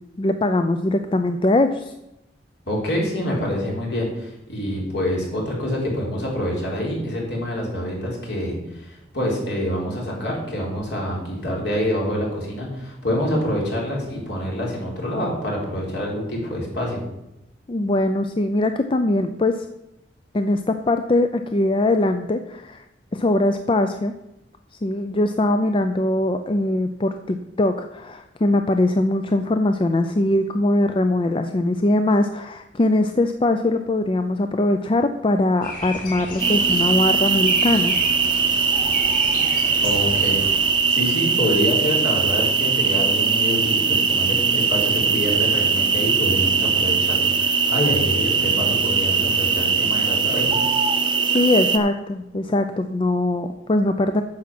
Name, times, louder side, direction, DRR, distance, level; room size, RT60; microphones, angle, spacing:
voice 1, 0.2-1.9 17.7-19.7 20.3-22.8 23.1-24.1 24.8-37.9 51.2-54.2, left 2 dB, 30° left, 8 dB, 0.4 m, -21 dB
voice 2, 2.7-17.0 39.8-50.7, equal, 65° left, -2 dB, 3.5 m, -26 dB
sound 1, 35.6-40.7, left 1 dB, 50° left, 3.2 m, -34 dB
sound 2, 36.4-51.8, right 5 dB, 25° right, 0.7 m, -20 dB
9.7 x 7.1 x 5.9 m, 0.91 s
head